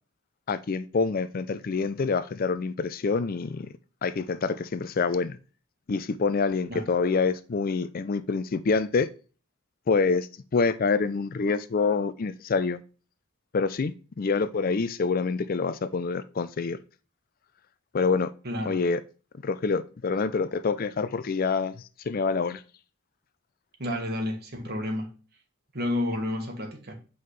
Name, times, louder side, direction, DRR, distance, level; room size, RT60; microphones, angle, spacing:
voice 1, 0.5-3.7 4.0-5.4 5.9-9.1 9.9-10.3 10.5-12.8 13.5-16.8 17.9-18.3 18.7-19.0 19.4-22.6, left 4 dB, 45° left, 0.4 m, -26 dB
voice 2, 18.4-18.8 23.8-25.1 25.7-26.9, left 1 dB, 50° right, 1.6 m, -30 dB
7.8 x 5.5 x 3.2 m
head